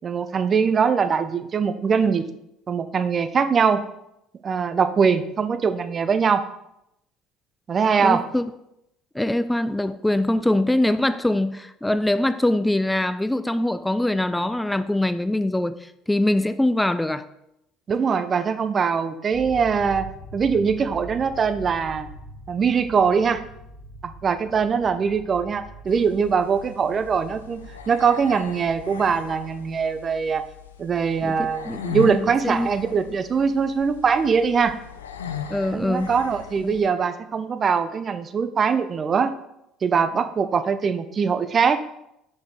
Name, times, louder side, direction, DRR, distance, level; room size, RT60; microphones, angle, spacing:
voice 1, 0.0-2.2 2.7-3.8 4.4-6.4 7.7-8.2 17.9-20.1 20.3-22.1 22.5-23.4 24.0-30.4 30.8-34.8 35.7-39.3 39.8-41.8, right 6 dB, 40° right, 11 dB, 0.6 m, -22 dB
voice 2, 8.0-8.5 9.1-17.2 31.2-32.7 35.5-36.1 36.6-36.8, left 1 dB, 10° left, 12 dB, 0.3 m, -23 dB
sound 1, 19.3-29.2, right 2 dB, 30° left, 2.4 m, -42 dB
sound 2, 25.9-36.9, left 8 dB, 90° left, 0.4 m, -38 dB
6.3 x 5.0 x 3.6 m, 0.81 s
hypercardioid pair, 65°, 0 cm